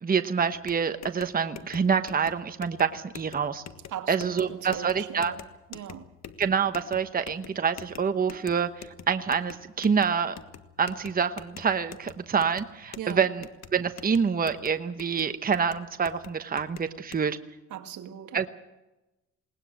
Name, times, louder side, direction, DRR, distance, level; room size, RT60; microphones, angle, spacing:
voice 1, 0.0-3.6 4.1-5.3 6.4-10.4 10.8-17.4 18.3-18.5, right 6 dB, 30° right, 1.1 m, -27 dB
sound 1, 0.5-17.2, left 8 dB, 65° left, 1.5 m, -47 dB
voice 2, 3.9-5.4 5.7-6.1 13.0-13.2 17.7-18.5, right 10 dB, 75° right, 2.0 m, -39 dB
20.5 x 19.0 x 7.6 m
cardioid pair, 90°, 30 cm